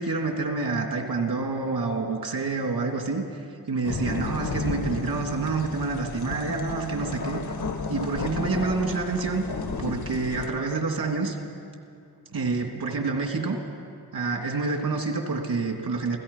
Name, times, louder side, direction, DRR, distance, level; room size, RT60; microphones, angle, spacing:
voice 1, 0.0-7.4 7.9-9.4 9.8-11.4 12.3-13.6 14.1-16.2, right 3 dB, 75° right, 2 dB, 3.0 m, -28 dB
sound 1, 3.8-10.5, left 4 dB, 80° left, 1.7 m, -33 dB
28.0 x 17.0 x 5.7 m, 2.5 s
wide cardioid pair, 105°, 37 cm